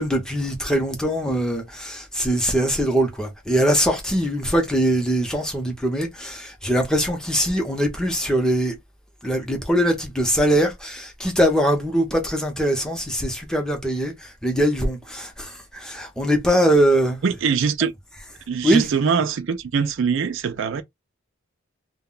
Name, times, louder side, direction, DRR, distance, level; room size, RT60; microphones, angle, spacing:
voice 1, 0.0-8.8 9.2-17.2 18.6-18.9, equal, 5° left, 0.7 m, -22 dB
voice 2, 17.2-17.9 18.5-20.8, right 6 dB, 65° right, 0.4 m, -22 dB
2.3 x 2.2 x 3.7 m
head